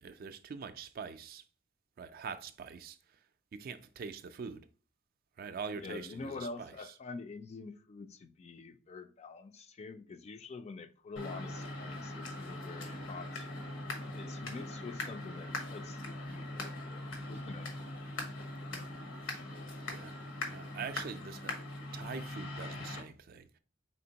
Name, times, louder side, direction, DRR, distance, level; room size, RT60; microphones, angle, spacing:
voice 1, 0.0-1.5 2.0-3.2 3.5-4.7 5.4-6.9 19.2-19.4 19.9-20.1 20.5-21.6 21.9-23.6, right 5 dB, 50° right, 0.3 m, -44 dB
voice 2, 5.7-13.5 14.1-17.9 18.7-19.1, left 4 dB, 35° left, 0.3 m, -46 dB
sound 1, 11.2-23.0, left 2 dB, 85° left, 1.1 m, -41 dB
4.4 x 3.4 x 2.8 m
head